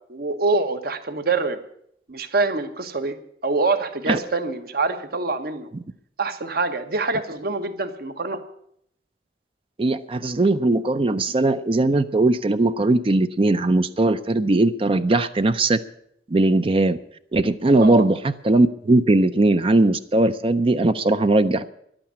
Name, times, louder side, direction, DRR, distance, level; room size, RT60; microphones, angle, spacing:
voice 1, 0.1-1.6 2.1-3.2 3.4-5.7 6.2-8.4 17.8-18.1, right 3 dB, 60° right, 9 dB, 1.2 m, -25 dB
voice 2, 9.8-15.8 16.3-17.0 17.3-21.7, right 2 dB, 30° right, 11 dB, 0.5 m, -19 dB
11.5 x 8.9 x 9.6 m, 0.71 s
head